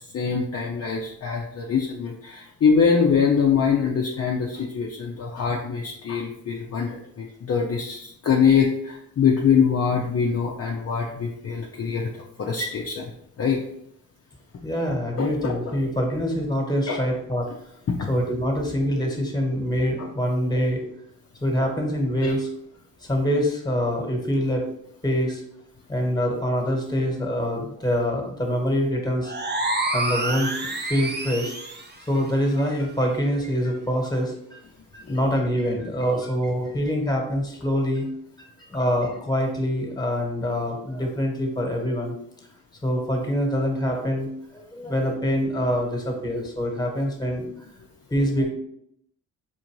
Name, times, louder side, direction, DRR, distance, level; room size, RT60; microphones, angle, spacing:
voice 1, 0.0-12.1 12.4-13.1 13.4-13.6 15.2-15.8 16.9-17.0 17.9-18.1 20.0-20.1 22.2-22.3 35.0-35.2, left 6 dB, 40° left, -1 dB, 0.6 m, -23 dB
voice 2, 14.6-17.5 18.1-20.8 21.4-22.5 23.1-24.6 25.0-25.4 25.9-29.3 29.9-30.5 30.9-31.5 32.1-34.6 34.9-38.1 38.7-42.1 42.8-44.3 44.5-47.5 48.1-48.5, equal, 10° left, 1 dB, 1.3 m, -25 dB
sound 1, 29.2-31.9, right 2 dB, 25° right, 0.7 m, -28 dB
4.3 x 2.5 x 3.0 m, 0.74 s
supercardioid pair, 50°, 38 cm